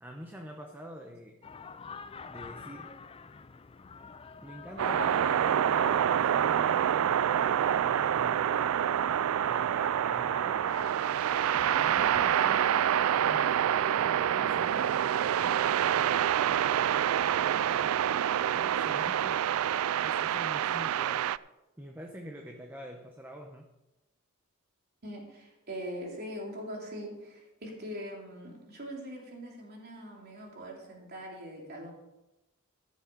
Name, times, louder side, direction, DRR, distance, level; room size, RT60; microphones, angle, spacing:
voice 1, 0.0-1.4 2.3-2.9 4.4-9.0 9.4-10.7 11.5-12.7 13.2-18.0 18.4-19.4 20.0-21.3 21.8-23.7, equal, 10° right, 2 dB, 0.9 m, -46 dB
sound 1, 1.4-12.3, left 4 dB, 25° left, 0.4 m, -46 dB
sound 2, 4.8-21.4, right 10 dB, 70° right, 0.3 m, -27 dB
voice 2, 25.0-31.9, equal, 45° right, -1 dB, 3.2 m, -42 dB
15.0 x 7.3 x 5.3 m, 0.97 s
head